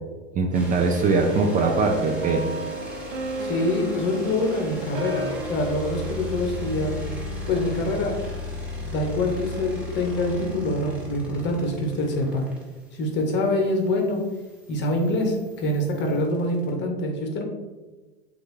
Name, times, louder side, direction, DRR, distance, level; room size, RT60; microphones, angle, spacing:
voice 1, 0.3-2.5, right 3 dB, 25° right, 3 dB, 0.5 m, -21 dB
sound 1, 0.5-16.7, left 1 dB, 5° right, 1.3 m, -37 dB
sound 2, 1.4-7.1, right 2 dB, 55° right, 0.8 m, -34 dB
voice 2, 3.4-7.1 7.5-8.1 8.8-12.4 12.9-14.2 14.7-17.4, left 1 dB, 35° left, 2 dB, 1.1 m, -25 dB
6.3 x 2.6 x 3.1 m, 1.2 s
hypercardioid pair, 90°, 32 cm